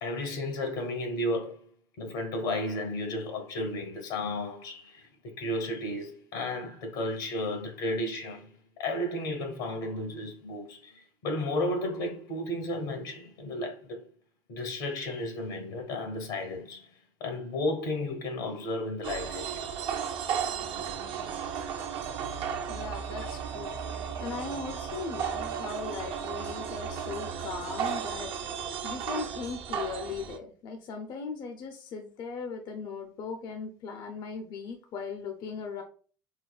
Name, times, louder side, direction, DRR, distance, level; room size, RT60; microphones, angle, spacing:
voice 1, 0.0-14.1 14.5-19.7 23.2-23.3 23.7-23.8, left 1 dB, 80° left, 1.1 m, -33 dB
sound 1, 19.0-30.4, right 7 dB, 55° right, 0.5 m, -34 dB
voice 2, 22.7-23.8 24.2-35.8, left 5 dB, 50° left, 0.5 m, -38 dB
4.0 x 2.1 x 2.3 m
hypercardioid pair, 85°, 10 cm